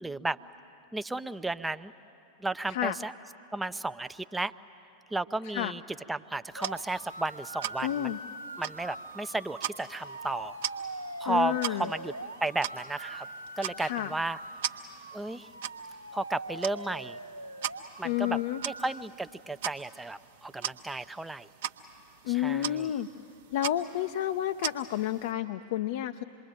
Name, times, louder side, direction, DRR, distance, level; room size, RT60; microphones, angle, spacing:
voice 1, 0.0-0.4 0.9-1.9 2.4-3.1 3.5-4.5 5.1-5.8 6.1-8.1 8.6-10.6 11.2-12.1 12.4-13.3 13.6-14.4 15.1-15.5 16.1-17.2 18.0-21.5 22.3-22.9, right 2 dB, 5° right, 11 dB, 0.5 m, -33 dB
sound 1, 6.5-25.3, right 10 dB, 55° right, 0.9 m, -41 dB
sound 2, 6.6-19.0, right 2 dB, 85° right, 0.6 m, -43 dB
voice 2, 7.8-8.2 11.3-11.9 13.8-14.1 18.0-18.6 22.2-23.1 23.5-26.2, left 12 dB, 55° left, 8 dB, 0.5 m, -30 dB
27.0 x 21.5 x 9.3 m, 2.9 s
figure-of-eight pair, 90°, 0 cm